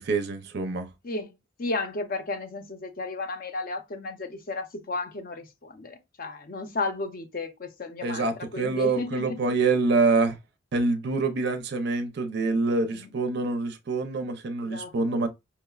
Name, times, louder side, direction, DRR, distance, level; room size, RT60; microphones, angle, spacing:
voice 1, 0.0-0.9 8.0-10.4 10.7-15.3, right 3 dB, 55° right, 0.4 m, -26 dB
voice 2, 1.6-9.5 12.9-13.1 14.6-15.2, left 2 dB, 45° left, 0.6 m, -34 dB
5.6 x 2.0 x 2.3 m
head